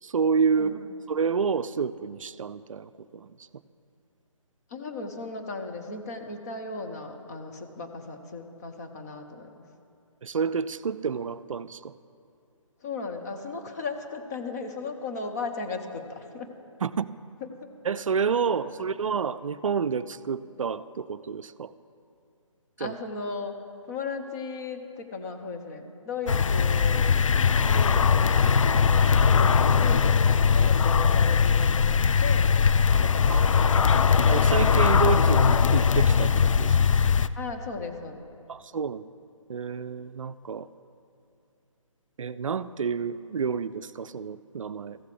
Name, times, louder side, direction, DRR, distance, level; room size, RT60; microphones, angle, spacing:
voice 1, 0.0-0.8 1.1-3.3 10.2-11.9 16.8-17.1 17.8-21.7 22.8-22.9 30.5-30.6 32.9-33.4 34.3-36.8 38.5-39.0 39.5-40.7 42.2-45.0, right 6 dB, 70° right, 14 dB, 0.4 m, -29 dB
voice 2, 4.7-9.6 12.8-16.5 17.4-17.5 18.5-18.6 22.8-23.6 23.9-27.2 27.6-28.1 28.4-30.2 30.5-32.6 33.0-33.9 37.4-38.3, left 4 dB, 30° left, 5 dB, 0.8 m, -36 dB
sound 1, 26.3-37.3, left 6 dB, 70° left, 0.4 m, -20 dB
14.5 x 6.6 x 4.9 m, 2.5 s
figure-of-eight pair, 145°, 17 cm